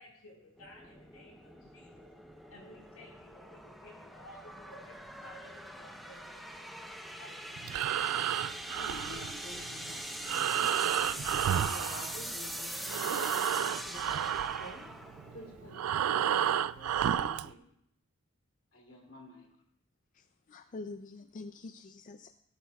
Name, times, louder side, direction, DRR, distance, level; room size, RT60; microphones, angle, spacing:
voice 1, 0.0-2.1 2.4-7.6, left 1 dB, 85° left, -1 dB, 4.9 m, -55 dB
sound 1, 0.6-16.0, equal, ahead, 0.7 m, -43 dB
Breathing, 7.6-12.6 12.8-17.5, right 9 dB, 85° right, 0.3 m, -31 dB
voice 2, 8.7-14.2 14.5-14.9 15.3-17.6 18.7-19.5, left 1 dB, 60° left, -1 dB, 3.0 m, -50 dB
voice 3, 20.1-22.4, left 3 dB, 35° left, 8 dB, 0.3 m, -46 dB
17.0 x 12.0 x 2.3 m, 0.77 s
head